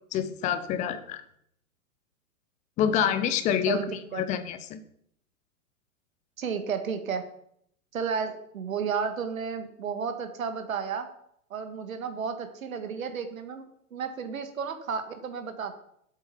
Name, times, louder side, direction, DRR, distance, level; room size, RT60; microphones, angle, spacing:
voice 1, 0.1-1.2 2.8-3.8 4.1-4.8, left 9 dB, 15° left, 12 dB, 0.6 m, -27 dB
voice 2, 3.7-4.2 6.4-7.2 7.9-11.1 11.5-13.6 13.9-15.8, right 6 dB, 65° right, 8 dB, 1.6 m, -32 dB
8.4 x 8.0 x 5.6 m, 0.71 s
figure-of-eight pair, 105°, 45 cm